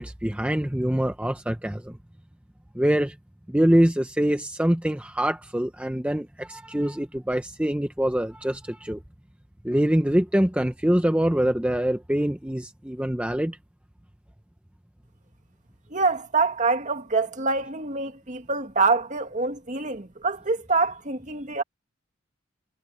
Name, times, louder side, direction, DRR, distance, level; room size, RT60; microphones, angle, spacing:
voice 1, 0.0-2.0 2.7-3.2 3.5-9.0 9.6-13.6, right 1 dB, 5° right, 0.7 m, -24 dB
voice 2, 15.9-21.6, right 3 dB, 35° right, 2.1 m, -25 dB
head